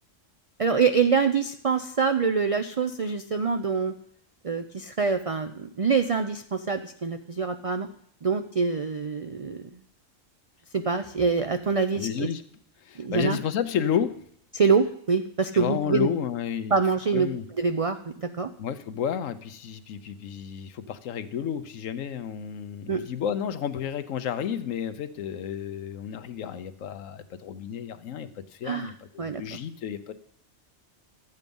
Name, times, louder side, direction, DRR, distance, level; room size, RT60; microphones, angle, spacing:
voice 1, 0.6-4.0 4.4-7.9 8.2-9.7 10.7-12.3 13.0-13.4 14.5-16.1 16.7-18.5 22.9-23.1 28.6-28.9 29.2-29.4, right 5 dB, 55° right, 8 dB, 0.4 m, -25 dB
voice 2, 11.9-12.4 12.8-14.1 15.5-16.8 17.1-17.4 18.6-30.1, left 8 dB, 90° left, 12 dB, 1.1 m, -31 dB
13.0 x 8.1 x 5.3 m, 0.66 s
omnidirectional pair, 1.3 m